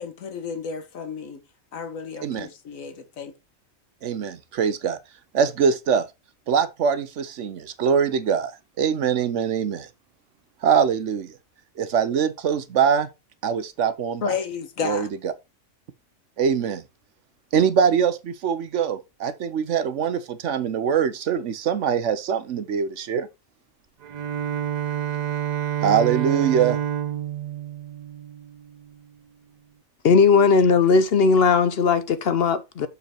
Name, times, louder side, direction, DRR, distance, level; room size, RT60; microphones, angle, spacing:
voice 1, 0.0-1.4 1.7-3.3 14.2-15.1, left 6 dB, 80° left, 1.6 m, -32 dB
voice 2, 4.0-5.0 5.3-6.1 6.5-8.5 8.8-9.9 10.6-11.3 11.8-13.1 13.4-14.2 14.8-15.3 16.4-16.8 17.5-23.3 25.8-26.8, right 7 dB, 65° right, 1.0 m, -23 dB
Bowed string instrument, 24.0-29.0, right 10 dB, 90° right, 0.3 m, -28 dB
voice 3, 30.0-32.9, left 5 dB, 55° left, 0.8 m, -18 dB
6.7 x 5.3 x 4.3 m
omnidirectional pair, 1.4 m